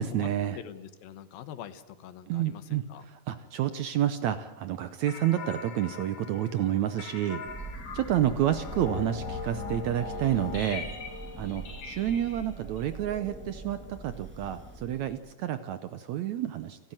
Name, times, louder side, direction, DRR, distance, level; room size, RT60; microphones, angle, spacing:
voice 1, 0.0-0.6 2.3-2.8 3.3-7.4 7.9-10.9 11.4-13.8 14.0-16.8, right 11 dB, 70° right, 11 dB, 1.8 m, -29 dB
voice 2, 0.6-3.1, left 10 dB, 85° left, 12 dB, 3.0 m, -44 dB
sound 1, 5.1-14.0, left 4 dB, 55° left, 3.8 m, -41 dB
Thunder, 7.4-15.3, right 3 dB, 5° right, 0.9 m, -43 dB
30.0 x 12.0 x 9.0 m, 1.0 s
omnidirectional pair, 4.0 m